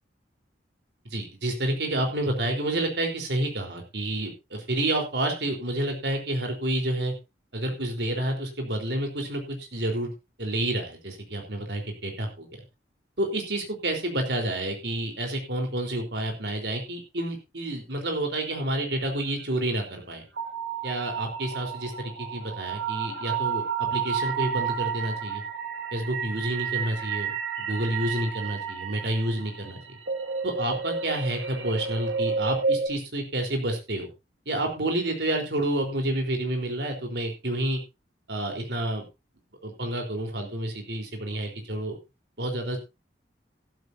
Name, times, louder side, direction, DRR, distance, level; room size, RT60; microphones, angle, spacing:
voice 1, 1.1-7.1 7.5-10.1 10.4-12.5 13.2-20.2 20.8-25.4 25.9-29.8 30.4-34.1 34.5-37.8 38.3-39.1 39.6-42.0 42.4-42.8, right 1 dB, 70° right, 3 dB, 4.0 m, -29 dB
sound 1, 20.4-32.9, right 6 dB, 85° right, 2.2 m, -31 dB
15.0 x 13.0 x 2.7 m, 0.26 s
head